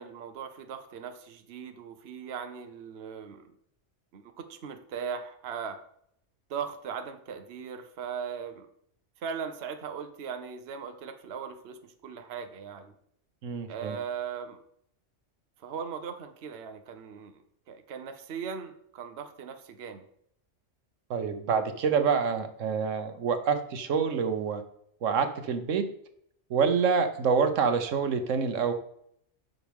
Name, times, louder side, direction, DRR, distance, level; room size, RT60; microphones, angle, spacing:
voice 1, 0.0-3.5 4.1-5.8 6.5-8.7 9.2-12.9 13.7-14.6 15.6-17.4 17.7-20.0, right 7 dB, 60° right, 7 dB, 1.0 m, -39 dB
voice 2, 13.4-14.0 21.1-24.6 25.0-25.9 26.5-28.7, right 6 dB, 85° right, 8 dB, 1.2 m, -27 dB
9.5 x 6.1 x 3.5 m, 0.69 s
omnidirectional pair, 1.3 m